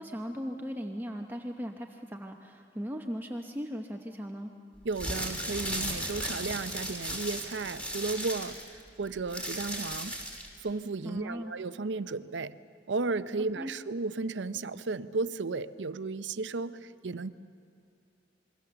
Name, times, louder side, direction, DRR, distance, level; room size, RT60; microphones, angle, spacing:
voice 1, 0.0-4.5 11.0-11.5 13.6-13.7, equal, 10° right, 3 dB, 0.9 m, -38 dB
sound 1, 4.8-10.6, equal, 5° left, 3.1 m, -36 dB
voice 2, 4.8-10.2 10.6-12.5 12.9-17.3, right 3 dB, 80° right, 14 dB, 0.7 m, -34 dB
27.0 x 22.5 x 7.0 m, 2.5 s
head